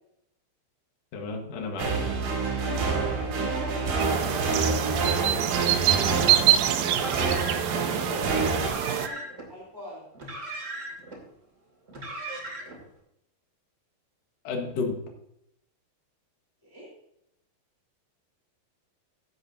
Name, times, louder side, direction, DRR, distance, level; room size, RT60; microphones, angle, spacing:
voice 1, 1.1-1.9 14.4-15.0, left 4 dB, 55° left, 1 dB, 2.1 m, -31 dB
sound 1, 1.8-8.7, right 4 dB, 55° right, 3.8 m, -28 dB
voice 2, 3.1-6.6 6.9-7.5 7.8-10.1 16.6-16.9, equal, 5° right, -6 dB, 3.2 m, -41 dB
sound 2, 4.0-9.1, right 12 dB, 90° right, 2.1 m, -25 dB
Car, 6.8-7.8 8.5-9.5 10.1-11.2 11.9-12.8, right 1 dB, 25° right, 2.1 m, -38 dB
15.5 x 7.9 x 2.7 m, 0.78 s
omnidirectional pair, 4.8 m